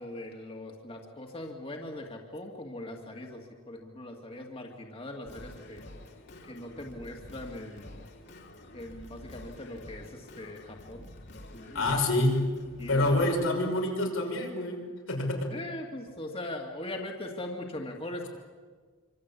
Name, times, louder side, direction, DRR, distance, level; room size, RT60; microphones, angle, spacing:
voice 1, 0.0-5.9 6.4-8.1 8.7-11.1 11.5-12.0 12.8-13.3 15.5-18.3, left 1 dB, 30° left, 1 dB, 2.4 m, -40 dB
Singing, 5.3-13.2, left 1 dB, 55° left, 3.7 m, -48 dB
voice 2, 11.7-12.5 12.9-15.5, left 1 dB, 85° left, 2 dB, 6.1 m, -27 dB
27.0 x 25.5 x 8.5 m, 1.6 s
head